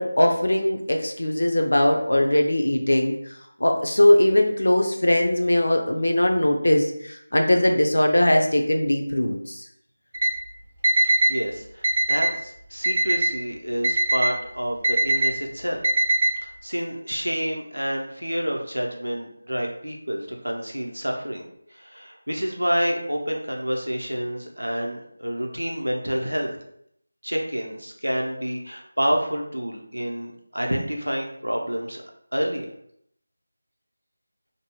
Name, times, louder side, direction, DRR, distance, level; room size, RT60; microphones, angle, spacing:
voice 1, 0.0-3.1 3.6-6.9 7.3-9.6, left 1 dB, 65° left, 2 dB, 0.5 m, -20 dB
Alarm, 10.1-10.3 10.8-11.3 11.8-12.3 12.8-13.3 13.8-14.3 14.8-15.3 15.8-16.3, right 1 dB, 40° right, 0.5 m, -20 dB
voice 2, 11.0-15.8 16.4-21.4 21.7-26.5 27.2-32.0 32.3-32.7, equal, 85° right, 1 dB, 0.6 m, -28 dB
2.6 x 2.2 x 3.0 m, 0.72 s
figure-of-eight pair, 165°, 0 cm